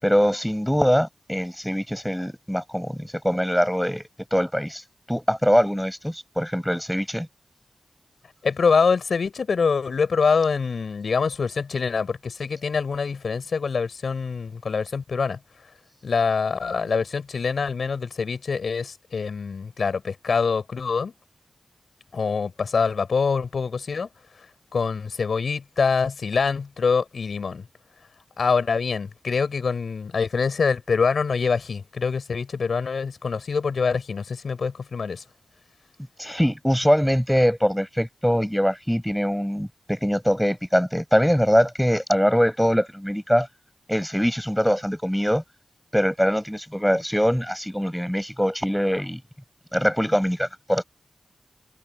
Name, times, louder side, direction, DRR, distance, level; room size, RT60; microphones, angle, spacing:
voice 1, 0.0-4.0 4.3-4.8 5.1-7.3 36.2-43.5 43.9-45.4 45.9-49.2 49.7-50.8, equal, ahead, 7.5 m, -22 dB
voice 2, 8.4-15.4 16.0-21.1 22.1-24.1 24.7-27.7 28.4-35.2, left 5 dB, 85° left, 7.1 m, -25 dB
cardioid pair, 55°, 0 cm